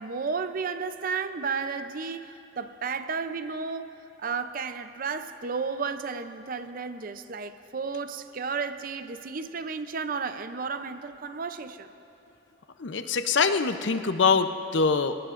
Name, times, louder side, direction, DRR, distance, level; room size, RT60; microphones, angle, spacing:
voice 1, 0.0-3.9 4.2-11.9, right 5 dB, 45° right, 10 dB, 0.6 m, -33 dB
voice 2, 12.8-15.2, left 5 dB, 65° left, 9 dB, 0.7 m, -24 dB
25.0 x 17.5 x 2.5 m, 2.9 s
head